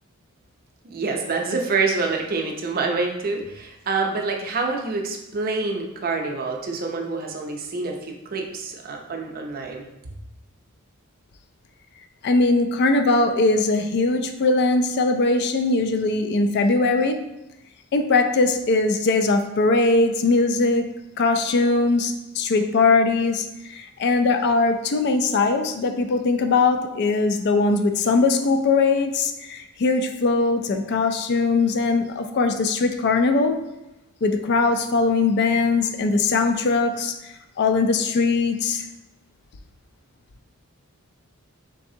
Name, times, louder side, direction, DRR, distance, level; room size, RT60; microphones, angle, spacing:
voice 1, 0.8-9.8, right 3 dB, 45° right, 2 dB, 0.5 m, -27 dB
voice 2, 12.2-17.2 17.9-20.9 21.2-33.6 34.2-37.2 37.6-38.8, left 3 dB, 50° left, 7 dB, 0.4 m, -20 dB
4.0 x 3.4 x 2.7 m, 0.93 s
head